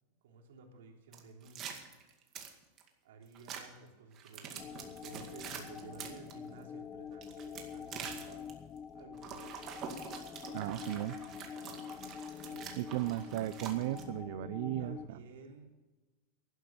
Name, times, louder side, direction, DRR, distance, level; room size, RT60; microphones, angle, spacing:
voice 1, 0.2-1.7 3.0-8.5 8.9-9.6 11.6-11.9 12.4-12.8 14.8-15.7, right 4 dB, 85° right, 2 dB, 3.2 m, -54 dB
sound 1, 1.1-2.9 3.3-3.6 4.1-6.3 7.1-8.5 9.1-14.0, right 7 dB, 30° right, 2.1 m, -45 dB
sound 2, 4.6-15.1, left 7 dB, 25° left, 0.6 m, -46 dB
voice 2, 10.5-11.2 12.8-15.2, right 15 dB, 65° right, 12 dB, 0.5 m, -35 dB
11.5 x 11.5 x 7.2 m, 1.2 s
supercardioid pair, 150°, 0 cm